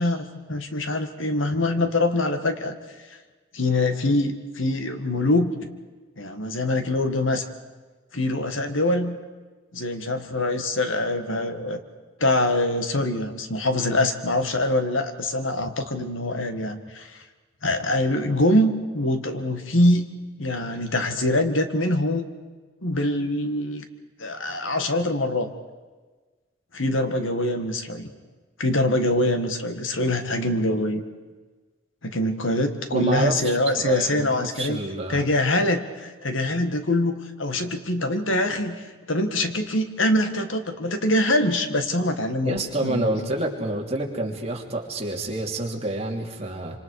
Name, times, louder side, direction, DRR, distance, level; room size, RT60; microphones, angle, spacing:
voice 1, 0.0-2.8 3.5-5.5 6.2-7.4 8.1-9.2 9.7-11.8 12.2-17.2 17.6-20.1 20.4-22.2 22.8-23.8 24.2-25.5 26.7-28.1 28.6-31.0 32.0-34.8 35.1-38.8 39.1-43.3, left 1 dB, 80° left, 7 dB, 1.9 m, -24 dB
voice 2, 32.9-35.2 42.4-46.8, right 1 dB, 30° right, 0 dB, 2.8 m, -28 dB
27.0 x 26.5 x 4.9 m, 1.3 s
head